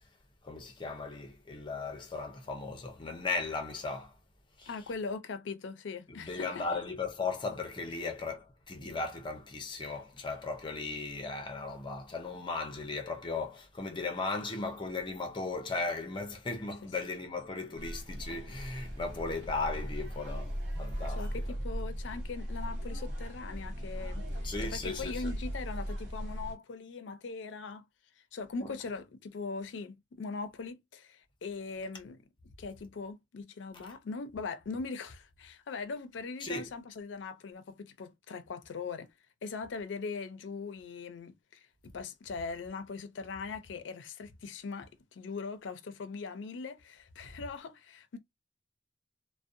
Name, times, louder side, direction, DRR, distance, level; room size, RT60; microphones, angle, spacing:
voice 1, 0.4-4.1 4.6-4.7 6.1-21.3 24.4-25.3 28.6-28.7 33.8-33.9 36.4-36.7, left 3 dB, 25° left, 0.5 m, -37 dB
voice 2, 4.7-6.7 17.0-17.1 21.2-27.8 28.3-32.2 32.6-39.1 39.4-48.2, left 4 dB, 80° left, 0.4 m, -40 dB
sound 1, 17.8-26.5, equal, 65° right, 0.9 m, -38 dB
2.5 x 2.0 x 2.5 m
head